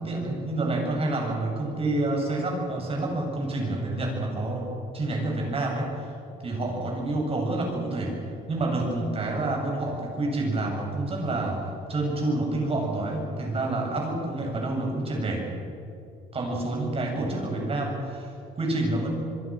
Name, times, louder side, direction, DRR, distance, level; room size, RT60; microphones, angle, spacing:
voice 1, 0.0-4.7 4.9-6.1 6.4-8.2 8.5-11.6 11.9-15.5 16.3-19.1, right 2 dB, 35° right, 0 dB, 7.9 m, -28 dB
26.5 x 23.0 x 6.4 m, 2.7 s
cardioid pair, 110°, 17 cm